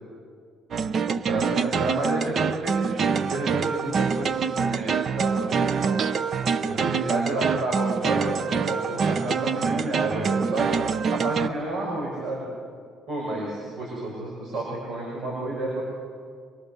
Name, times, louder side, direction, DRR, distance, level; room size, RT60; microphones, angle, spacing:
sound 1, 0.7-11.5, right 6 dB, 45° right, 0.6 m, -25 dB
voice 1, 1.3-6.0 6.6-10.7 11.1-12.4 13.1-15.8, right 2 dB, 75° right, -3 dB, 6.0 m, -30 dB
24.5 x 22.5 x 6.8 m, 2.2 s
cardioid pair, 140°, 0 cm